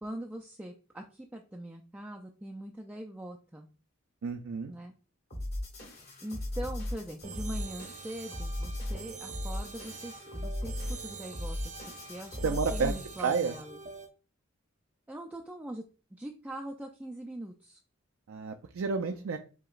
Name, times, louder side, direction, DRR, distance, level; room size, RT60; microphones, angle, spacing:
voice 1, 0.0-3.7 4.7-4.9 6.2-13.8 15.1-15.8 16.2-17.8 19.1-19.3, right 1 dB, 10° right, 1 dB, 0.3 m, -42 dB
voice 2, 4.2-4.7 12.4-12.9 13.2-13.5 18.3-19.4, right 5 dB, 85° right, 5 dB, 0.4 m, -30 dB
sound 1, 5.3-13.2, left 1 dB, 50° left, 1.9 m, -37 dB
sound 2, 7.2-14.1, right 5 dB, 40° right, 0.7 m, -45 dB
7.4 x 2.9 x 2.4 m, 0.36 s
head